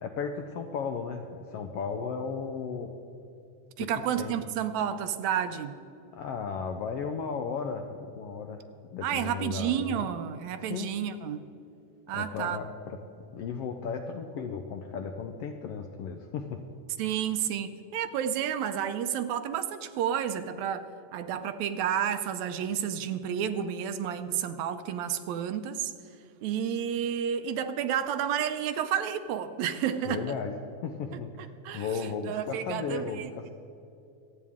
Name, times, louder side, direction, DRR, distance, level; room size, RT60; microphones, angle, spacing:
voice 1, 0.0-2.9 3.8-3.9 4.2-4.3 6.1-8.6 8.9-10.1 10.7-10.9 12.1-13.0 13.3-16.6 30.0-33.5, left 5 dB, 75° left, 5 dB, 1.4 m, -35 dB
voice 2, 3.8-5.7 9.0-11.4 12.1-12.6 17.0-20.9 21.1-25.9 26.4-30.3 31.6-33.3, right 9 dB, 80° right, 10 dB, 1.9 m, -31 dB
26.0 x 9.0 x 3.6 m, 2.8 s
omnidirectional pair, 3.4 m